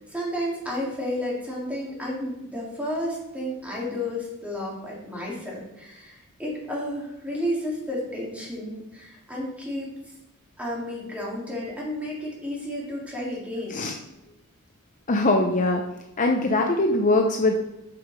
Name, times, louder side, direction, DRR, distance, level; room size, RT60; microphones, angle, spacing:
voice 1, 0.1-9.9 10.6-13.9, left 1 dB, 5° right, -5 dB, 2.8 m, -32 dB
voice 2, 15.1-15.8 16.2-17.6, left 2 dB, 35° left, 3 dB, 0.7 m, -21 dB
7.7 x 5.6 x 4.9 m, 0.94 s
head